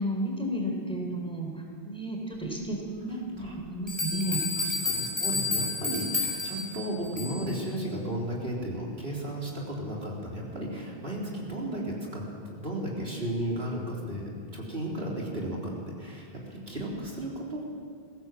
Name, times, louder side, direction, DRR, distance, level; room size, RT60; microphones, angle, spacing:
voice 1, 0.0-4.4, right 1 dB, 5° left, 0 dB, 4.4 m, -32 dB
sound 1, 3.4-3.5 3.9-7.6, left 3 dB, 35° right, 7.6 m, -31 dB
voice 2, 4.6-17.6, right 1 dB, 65° right, -3 dB, 4.0 m, -34 dB
21.5 x 16.5 x 7.7 m, 2.1 s
omnidirectional pair, 1.1 m